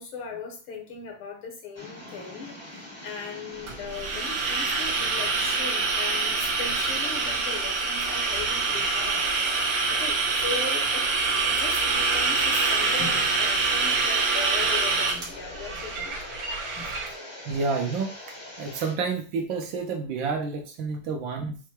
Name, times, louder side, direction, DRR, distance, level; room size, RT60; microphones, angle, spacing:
voice 1, 0.0-9.3 9.9-11.1 11.4-16.2 16.8-17.0 21.4-21.5, left 4 dB, 80° left, 2 dB, 2.0 m, -38 dB
sound 1, 1.7-18.9, left 1 dB, 25° left, 0.6 m, -43 dB
sound 2, 3.7-17.1, right 4 dB, 85° right, 2.2 m, -25 dB
voice 2, 17.5-18.1 18.6-21.6, right 4 dB, 70° right, 3 dB, 1.4 m, -29 dB
5.8 x 2.2 x 3.2 m, 0.37 s
omnidirectional pair, 2.3 m